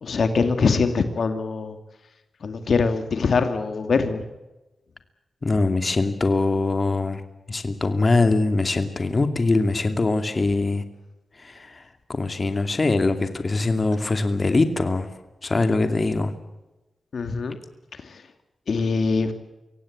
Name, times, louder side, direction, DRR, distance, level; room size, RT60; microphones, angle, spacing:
voice 1, 0.0-1.8 2.4-4.3 17.1-17.6 17.9-18.2 18.7-19.3, left 4 dB, 70° left, 7 dB, 2.4 m, -23 dB
voice 2, 5.4-7.2 7.5-10.8 11.3-15.1 15.4-16.3, left 3 dB, 40° left, 7 dB, 2.6 m, -22 dB
25.0 x 17.0 x 8.8 m, 1.0 s
cardioid pair, 75°, 0 cm